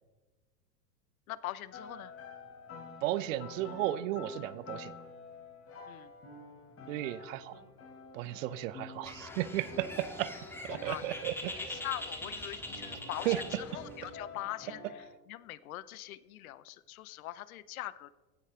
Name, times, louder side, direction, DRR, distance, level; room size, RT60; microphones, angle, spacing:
voice 1, 1.3-2.1 5.9-6.1 10.7-11.0 11.6-13.3 13.7-14.8 15.3-18.1, left 15 dB, 60° left, 18 dB, 0.7 m, -42 dB
sound 1, 1.7-15.1, left 3 dB, 30° left, 3.7 m, -49 dB
voice 2, 3.0-4.9 6.9-7.5 8.1-10.3 10.7-11.8 13.2-13.6 14.0-14.1, right 14 dB, 50° right, 17 dB, 0.8 m, -34 dB
Bird, 9.1-14.1, left 1 dB, 5° left, 1.8 m, -43 dB
16.0 x 9.6 x 3.6 m, 1.3 s
hypercardioid pair, 95°, 49 cm